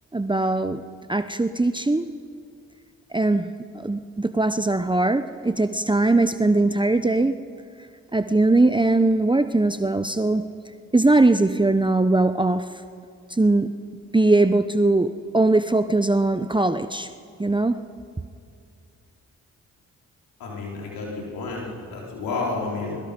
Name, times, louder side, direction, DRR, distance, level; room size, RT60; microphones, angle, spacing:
voice 1, 0.1-0.8 1.1-2.1 3.1-7.4 8.1-10.4 10.9-12.7 13.3-13.7 14.1-17.1 17.4-17.8, right 2 dB, 15° right, 10 dB, 0.9 m, -20 dB
voice 2, 20.4-23.0, left 3 dB, 85° left, -3 dB, 4.3 m, -30 dB
24.5 x 22.5 x 5.3 m, 2.3 s
supercardioid pair, 45°, 34 cm